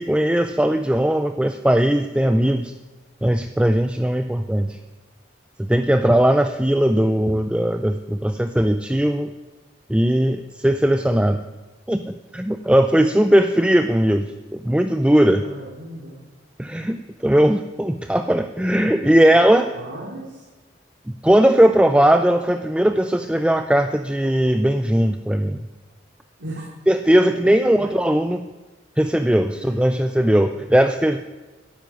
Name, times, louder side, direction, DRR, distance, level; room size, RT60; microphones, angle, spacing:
voice 1, 0.0-2.7 3.2-4.8 5.6-9.3 9.9-11.4 11.9-15.4 16.6-19.7 21.1-25.7 26.9-28.5 29.0-31.2, right 1 dB, 5° right, 8 dB, 0.4 m, -18 dB
voice 2, 15.3-16.1 19.3-19.4 19.7-20.5 26.4-26.7 27.4-27.5 29.5-30.1, right 1 dB, 85° right, -3 dB, 3.1 m, -36 dB
12.5 x 10.5 x 9.1 m, 1.2 s
head